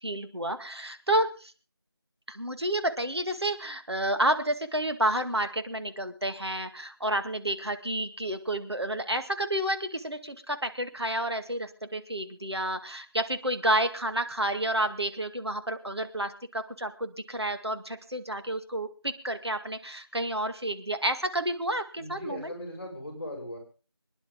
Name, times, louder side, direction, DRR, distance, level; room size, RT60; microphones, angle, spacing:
voice 1, 0.0-1.5 2.3-22.5, right 1 dB, 75° right, 7 dB, 2.2 m, -30 dB
voice 2, 21.9-23.6, left 1 dB, 25° left, 0 dB, 5.9 m, -38 dB
25.5 x 10.5 x 3.8 m, 0.34 s
figure-of-eight pair, 175°, 14 cm